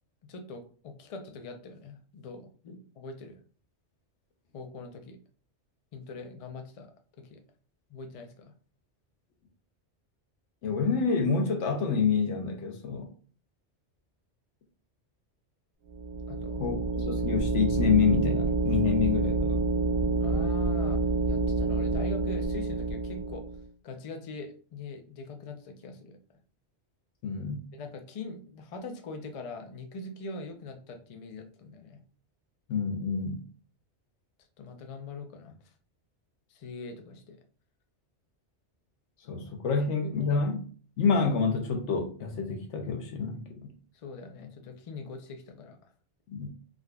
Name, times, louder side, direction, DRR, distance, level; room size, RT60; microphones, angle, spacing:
voice 1, 0.2-3.4 4.5-5.2 5.9-6.9 7.2-7.4 7.9-8.5 16.3-16.6 20.2-23.5 23.8-26.2 27.7-32.0 34.6-35.7 36.5-37.4 40.0-40.4 43.9-45.8, left 3 dB, 60° left, 0.3 m, -42 dB
voice 2, 10.6-13.1 16.6-19.7 27.2-27.7 32.7-33.4 39.2-40.6 41.0-43.7 46.3-46.5, left 5 dB, 90° left, 1.0 m, -28 dB
sound 1, 15.9-23.6, right 3 dB, 75° right, 0.9 m, -28 dB
3.6 x 2.4 x 2.2 m
omnidirectional pair, 1.2 m